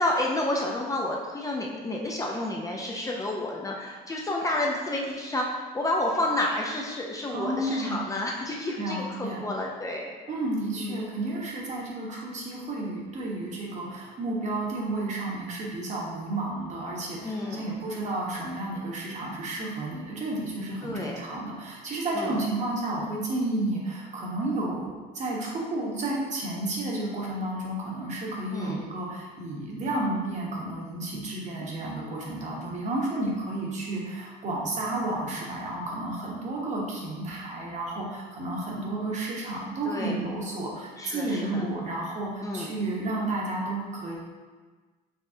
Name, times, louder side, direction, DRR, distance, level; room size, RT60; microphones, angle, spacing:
voice 1, 0.0-10.1 10.7-11.1 17.2-17.7 20.8-21.2 22.1-22.4 28.5-28.8 39.9-40.2 41.0-41.7 42.4-42.8, left 1 dB, 20° left, -2 dB, 0.5 m, -30 dB
voice 2, 7.3-8.1 8.8-9.5 10.3-44.2, right 2 dB, 45° right, -3 dB, 1.1 m, -31 dB
5.4 x 3.0 x 2.7 m, 1.4 s
cardioid pair, 110°, 17 cm